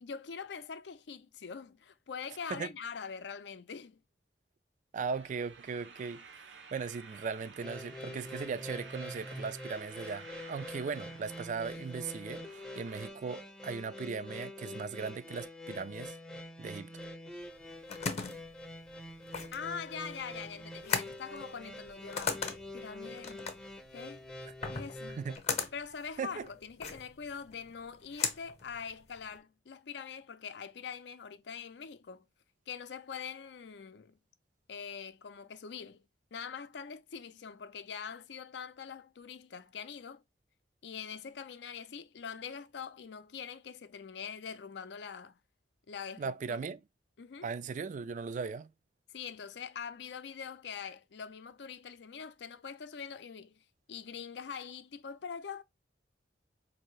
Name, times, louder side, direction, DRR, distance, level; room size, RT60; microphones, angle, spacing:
voice 1, 0.0-4.0 19.5-22.4 22.7-23.5 23.9-24.3 24.7-25.2 25.7-32.3 32.7-34.2 34.7-36.0 36.3-40.2 40.8-45.4 45.9-46.6 47.2-47.5 49.1-53.6 53.9-55.6, left 6 dB, 70° left, 0.5 m, -43 dB
voice 2, 4.9-12.5 12.8-16.2 16.6-17.0 24.4-24.5 25.1-25.4 26.2-26.5 46.2-46.8 47.4-48.7, right 5 dB, 45° right, 0.3 m, -38 dB
sound 1, 5.1-13.1, right 5 dB, 80° right, 0.8 m, -53 dB
sound 2, 7.6-25.4, left 1 dB, 5° left, 0.5 m, -45 dB
sound 3, 17.5-29.4, left 5 dB, 40° left, 0.8 m, -39 dB
4.5 x 2.7 x 3.1 m
head